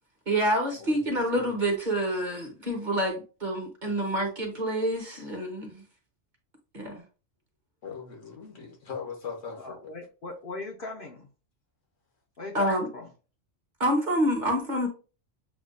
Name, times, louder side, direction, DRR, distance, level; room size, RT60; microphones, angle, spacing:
voice 1, 0.3-5.8 6.7-7.0 12.5-12.9 13.8-14.9, right 1 dB, 40° right, 1.1 m, -27 dB
voice 2, 0.8-1.5 7.8-9.8, left 6 dB, 75° left, 1.5 m, -40 dB
voice 3, 9.6-11.3 12.4-13.1, left 3 dB, 50° left, 0.8 m, -39 dB
7.1 x 2.4 x 2.5 m
omnidirectional pair, 1.3 m